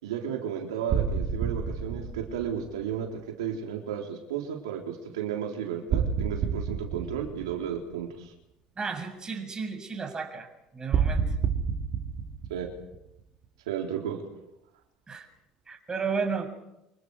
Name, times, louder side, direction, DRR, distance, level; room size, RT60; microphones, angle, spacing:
voice 1, 0.0-8.3 12.5-12.7 13.7-14.2, right 8 dB, 85° right, 1 dB, 4.1 m, -33 dB
sound 1, 0.9-3.0 5.9-7.9 10.9-13.4, right 6 dB, 55° right, 4.1 m, -29 dB
voice 2, 8.8-10.5 10.7-11.3 15.1-15.3 15.7-16.5, right 5 dB, 30° right, 5 dB, 7.3 m, -32 dB
29.0 x 27.5 x 5.1 m, 0.87 s
hypercardioid pair, 70°, 3 cm